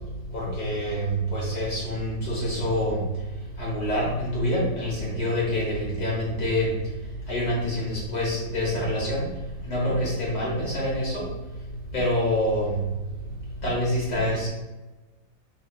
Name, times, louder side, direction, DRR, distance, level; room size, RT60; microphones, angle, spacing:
voice 1, 0.3-3.0 3.6-6.7 7.3-9.2 9.7-11.2 11.9-12.7 13.6-14.5, left 1 dB, 55° left, -5 dB, 1.6 m, -26 dB
5.7 x 3.3 x 2.4 m, 1.1 s
omnidirectional pair, 2.0 m